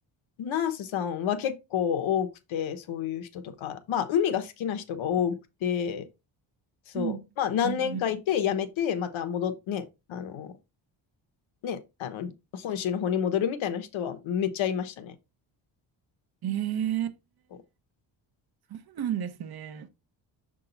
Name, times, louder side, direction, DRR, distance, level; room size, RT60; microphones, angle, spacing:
voice 1, 0.4-5.3 5.6-6.1 6.9-9.8 10.1-10.5 11.6-15.1, left 8 dB, 80° left, 1.2 m, -29 dB
voice 2, 7.6-8.0 16.4-17.2 18.7-19.9, right 10 dB, 50° right, 0.9 m, -32 dB
6.8 x 3.8 x 4.0 m
cardioid pair, 115°, 47 cm